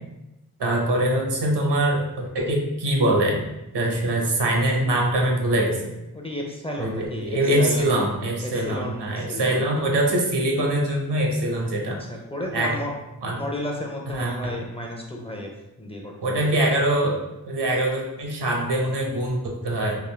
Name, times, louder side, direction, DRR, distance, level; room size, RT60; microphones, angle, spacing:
voice 1, 0.6-3.4 3.7-5.8 6.8-12.0 12.5-12.8 13.2-13.4 14.1-14.5 16.2-20.0, right 1 dB, 80° right, 0 dB, 0.9 m, -23 dB
voice 2, 6.1-7.9 8.4-9.6 11.8-12.9 13.4-15.5 15.8-16.5, left 1 dB, 15° left, -1 dB, 0.6 m, -33 dB
3.7 x 2.5 x 3.2 m, 0.94 s
wide cardioid pair, 100°, 40 cm